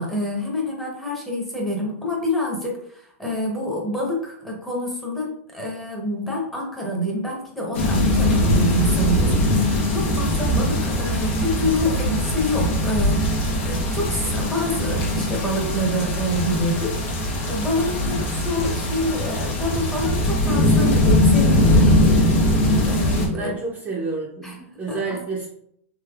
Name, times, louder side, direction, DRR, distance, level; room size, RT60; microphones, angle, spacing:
voice 1, 0.0-17.0 17.4-21.9 22.6-23.5 24.4-24.6 24.9-25.2, left 1 dB, 5° left, -3 dB, 0.9 m, -27 dB
sound 1, 7.7-23.3, left 1 dB, 70° left, 1.2 m, -21 dB
voice 2, 23.4-25.5, right 4 dB, 20° right, -3 dB, 0.6 m, -29 dB
3.3 x 3.0 x 2.3 m, 0.69 s
hypercardioid pair, 135°, 8 cm